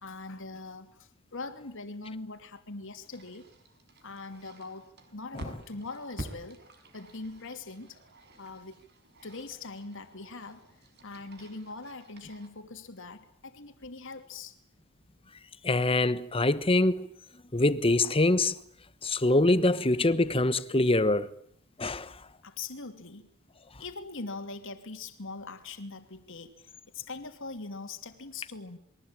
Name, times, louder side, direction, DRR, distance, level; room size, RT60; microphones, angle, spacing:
voice 1, 0.0-3.5 4.0-6.6 6.9-8.0 8.4-8.8 9.2-14.6 22.4-23.3 23.8-28.8, left 3 dB, 60° left, 2.9 m, -42 dB
sound 1, 3.0-12.5, right 1 dB, 50° right, 5.7 m, -49 dB
voice 2, 15.6-17.0 17.5-18.6 19.0-21.3 21.8-22.1, left 2 dB, 25° left, 1.2 m, -24 dB
28.0 x 22.5 x 8.9 m
head